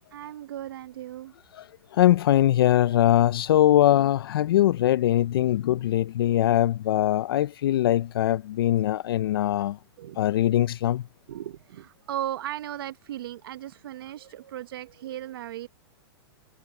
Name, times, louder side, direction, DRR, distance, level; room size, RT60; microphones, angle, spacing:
voice 1, 0.1-1.3 10.0-10.2 11.3-15.7, right 12 dB, 60° right, 0.8 m, -36 dB
voice 2, 1.9-9.8 10.2-11.0, left 12 dB, 60° left, 0.4 m, -22 dB
hypercardioid pair, 170°, 14 cm